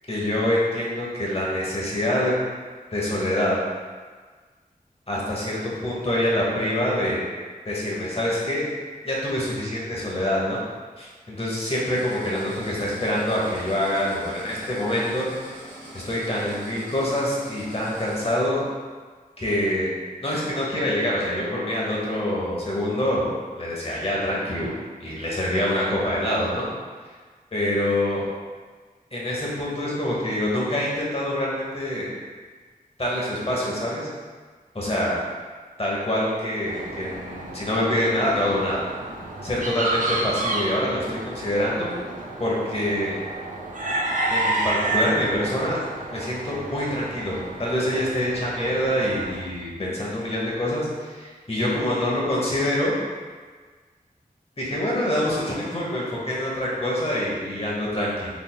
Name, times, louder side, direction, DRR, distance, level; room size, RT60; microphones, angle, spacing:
voice 1, 0.1-2.3 2.9-3.6 5.1-7.2 7.6-8.7 9.0-10.6 11.0-15.6 15.9-18.6 19.4-19.9 20.2-23.2 23.6-24.7 25.0-26.7 27.5-28.3 29.1-32.1 33.0-34.1 34.7-35.2 35.8-38.8 39.4-41.9 42.4-43.2 44.3-45.8 46.1-52.9 54.6-58.3, left 1 dB, 40° left, -5 dB, 1.0 m, -25 dB
sound 1, 11.8-18.3, right 1 dB, 75° right, 1.4 m, -43 dB
sound 2, 36.7-49.4, right 2 dB, 55° right, 0.5 m, -30 dB
3.9 x 3.4 x 2.2 m, 1.5 s
wide cardioid pair, 60°, 16 cm